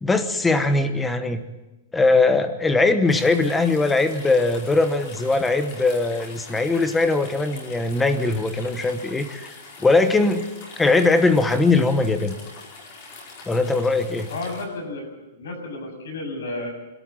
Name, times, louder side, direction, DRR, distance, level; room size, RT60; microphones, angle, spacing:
voice 1, 0.0-1.4 1.9-9.5 9.8-10.5 10.8-12.4 13.5-14.3, left 3 dB, 5° left, 9 dB, 1.0 m, -20 dB
sound 1, 3.1-14.6, left 3 dB, 35° left, 4.8 m, -43 dB
voice 2, 14.3-16.7, left 2 dB, 85° left, 4 dB, 7.3 m, -32 dB
25.5 x 13.5 x 7.6 m, 1.0 s
supercardioid pair, 175°, 0 cm